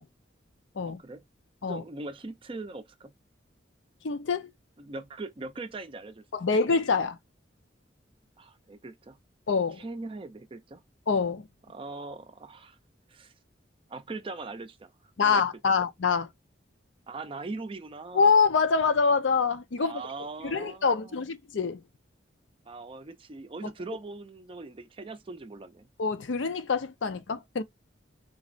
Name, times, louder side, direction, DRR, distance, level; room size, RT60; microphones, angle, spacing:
voice 1, 0.8-1.2 1.6-3.1 4.8-6.2 8.4-9.2 9.8-10.8 11.7-12.8 13.1-13.3 13.9-14.9 15.2-15.4 15.7-15.8 17.1-18.3 19.8-21.2 22.7-25.9, right 3 dB, 30° right, 0.4 m, -40 dB
voice 2, 4.0-4.5 6.3-7.2 9.5-9.8 11.1-11.4 15.2-16.3 18.1-20.0 20.4-21.8 26.0-27.6, left 5 dB, 80° left, 0.5 m, -25 dB
3.9 x 2.0 x 2.4 m
head